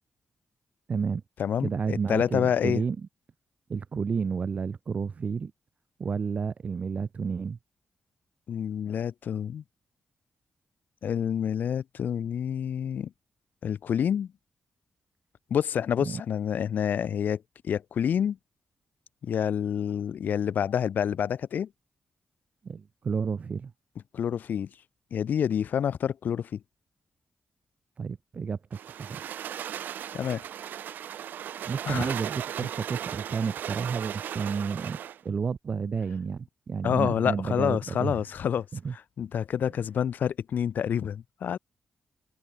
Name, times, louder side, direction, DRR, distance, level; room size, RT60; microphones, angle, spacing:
voice 1, 0.9-1.2 1.6-3.0 3.7-5.5 6.0-7.6 16.0-16.2 22.6-23.7 28.0-29.3 31.6-35.0 35.2-38.1 38.7-38.9, right 5 dB, 50° right, 1.1 m, -31 dB
voice 2, 1.4-2.8 8.5-9.6 11.0-13.1 13.6-14.3 15.5-18.4 19.2-21.7 24.1-24.7 25.1-26.6 30.1-30.4 31.9-32.1 36.8-38.7 38.9-41.6, left 8 dB, 75° left, 1.7 m, -28 dB
sound 1, 28.7-35.2, right 10 dB, 85° right, 3.9 m, -37 dB
cardioid pair, 80°, 3 cm